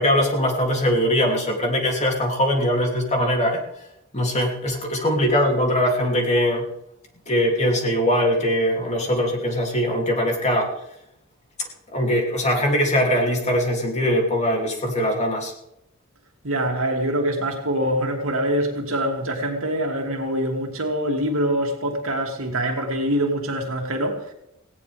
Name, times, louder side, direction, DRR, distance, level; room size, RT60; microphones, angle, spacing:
voice 1, 0.0-3.6 4.1-6.7 7.3-10.7 11.9-15.5, equal, 35° left, 3.1 m, -21 dB
voice 2, 16.4-24.3, right 1 dB, 70° right, 2.8 m, -24 dB
18.5 x 17.0 x 3.6 m
head